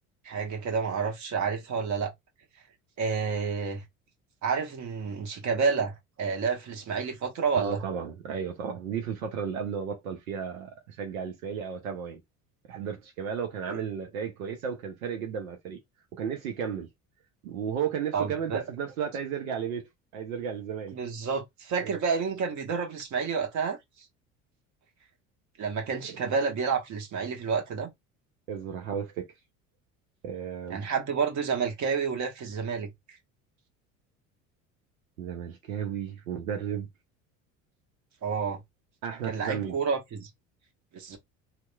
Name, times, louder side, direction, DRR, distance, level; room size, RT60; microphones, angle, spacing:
voice 1, 0.2-2.1 3.0-3.8 4.4-7.8 13.7-13.8 18.1-18.6 20.9-23.8 25.6-27.9 30.7-32.9 38.2-38.6 39.2-40.3 40.9-41.2, right 5 dB, 45° right, 1.1 m, -29 dB
voice 2, 7.5-12.2 12.7-15.8 16.1-16.9 17.4-19.8 20.1-20.9 21.8-22.0 26.1-26.2 28.5-29.3 30.2-30.8 35.2-36.9 39.0-39.8, right 7 dB, 85° right, 0.6 m, -34 dB
2.8 x 2.0 x 2.2 m
hypercardioid pair, 70°, 40 cm